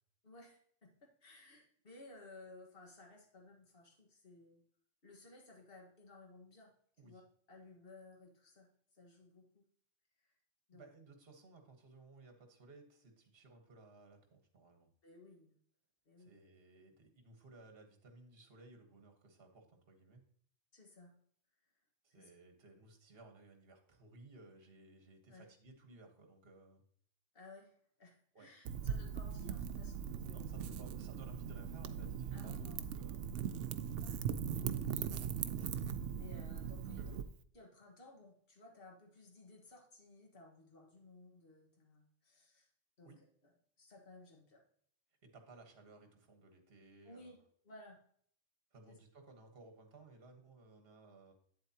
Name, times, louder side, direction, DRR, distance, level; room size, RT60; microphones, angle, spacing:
voice 1, 0.2-4.6 5.0-6.7 7.0-7.2 7.5-9.6 10.2-10.3 10.7-10.9 15.0-15.6 16.1-16.3 20.7-21.1 22.1-22.3 25.3-25.5 27.3-30.5 32.3-32.9 34.0-35.3 35.6-37.1 37.5-42.7 43.0-43.2 43.8-44.6 47.0-48.0 48.9-49.0, left 2 dB, 50° left, 1 dB, 1.7 m, -58 dB
voice 2, 10.7-14.9 16.2-20.2 22.0-26.8 28.3-28.5 30.3-33.3 36.9-37.2 43.0-43.2 45.2-47.4 48.7-51.3, right 2 dB, 55° right, 5 dB, 1.5 m, -59 dB
Wind / Fire, 28.6-37.2, right 8 dB, 80° right, 0.9 m, -40 dB
8.6 x 7.8 x 2.8 m, 0.62 s
omnidirectional pair, 1.2 m